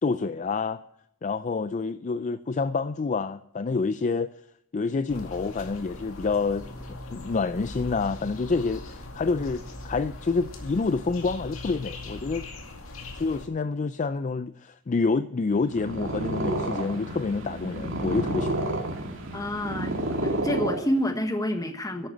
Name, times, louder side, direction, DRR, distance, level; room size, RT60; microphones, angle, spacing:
voice 1, 0.0-0.8 1.2-4.3 4.7-12.4 13.1-18.7, left 4 dB, 35° left, 0.4 m, -28 dB
sound 1, 5.1-13.5, left 2 dB, 75° left, 2.3 m, -40 dB
Purr, 15.6-21.3, right 1 dB, 65° right, 2.4 m, -30 dB
voice 2, 19.3-19.9 20.2-22.1, equal, 15° left, 1.3 m, -28 dB
11.0 x 9.0 x 7.8 m
head